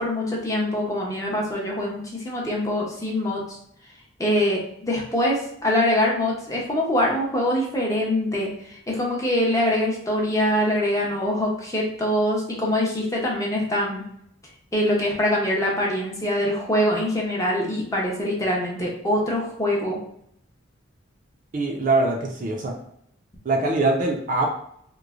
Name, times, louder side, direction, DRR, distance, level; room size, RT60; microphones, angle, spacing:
voice 1, 0.0-3.6 4.2-14.0 14.7-20.0, left 1 dB, 15° left, -3 dB, 0.6 m, -24 dB
voice 2, 21.5-22.8 23.4-24.5, right 2 dB, 40° right, 1 dB, 0.4 m, -23 dB
3.0 x 2.1 x 2.4 m, 0.70 s
head